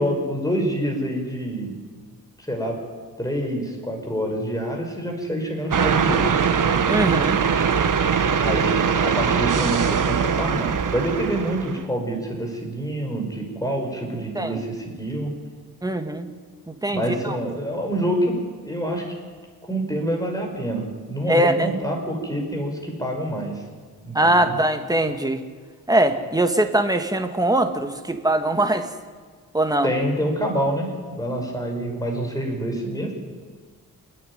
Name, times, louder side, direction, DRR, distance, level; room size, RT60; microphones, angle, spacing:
voice 1, 0.0-1.8 2.4-2.8 3.2-6.3 8.4-15.3 16.9-19.0 19.7-23.6 24.0-24.6 29.8-33.1, right 1 dB, 10° left, 1 dB, 5.5 m, -26 dB
sound 1, 5.7-11.9, right 6 dB, 55° right, 1.3 m, -21 dB
voice 2, 6.9-7.4 14.3-14.6 15.8-16.3 16.7-17.4 21.3-21.8 24.1-25.4 25.9-28.9 29.5-29.9, right 1 dB, 10° right, 6 dB, 1.7 m, -21 dB
28.0 x 9.8 x 10.0 m, 1.5 s
wide cardioid pair, 110°, 37 cm